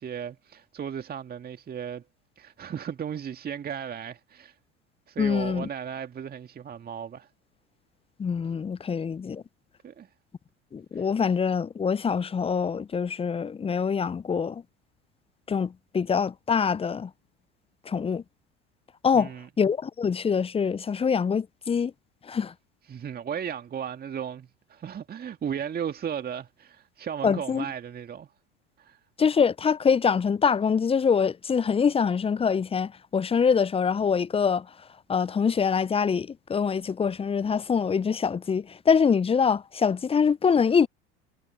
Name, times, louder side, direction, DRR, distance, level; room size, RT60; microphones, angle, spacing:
voice 1, 0.0-2.0 2.4-4.6 5.1-7.3 9.8-10.1 10.9-11.0 19.1-19.5 22.9-28.3 28.8-29.0, right 8 dB, 25° right, 1.9 m, -35 dB
voice 2, 5.2-5.7 8.2-9.4 10.7-14.6 15.5-17.1 17.9-18.2 19.0-19.3 19.6-21.9 22.2-22.5 27.2-27.6 29.2-34.7 35.1-40.9, left 6 dB, 15° left, 0.7 m, -24 dB
figure-of-eight pair, 75°, 34 cm